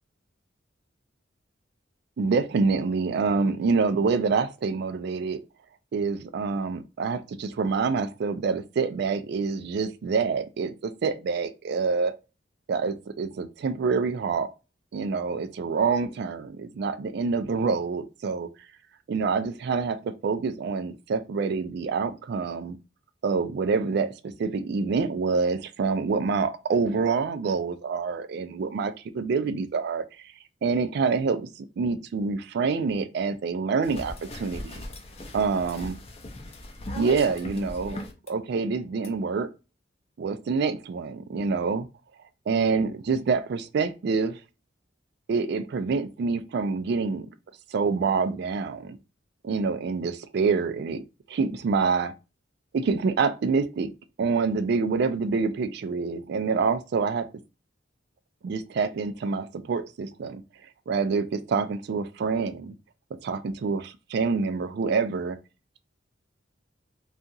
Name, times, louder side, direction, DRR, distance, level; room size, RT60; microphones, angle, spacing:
voice 1, 2.2-5.4 5.9-12.1 12.7-14.5 14.9-18.5 19.1-22.8 23.2-30.1 30.6-31.5 31.8-34.8 35.3-36.0 37.0-38.0 38.3-39.5 40.2-41.9 42.5-44.4 45.3-47.3 47.7-49.0 49.4-51.0 51.3-52.1 52.7-53.9 54.2-57.3 58.4-60.4 60.9-62.8 63.2-65.4, right 4 dB, 60° right, 0.3 m, -26 dB
sound 1, 33.8-38.3 39.0-39.1, left 1 dB, 35° left, 0.5 m, -39 dB
2.8 x 2.4 x 2.5 m
head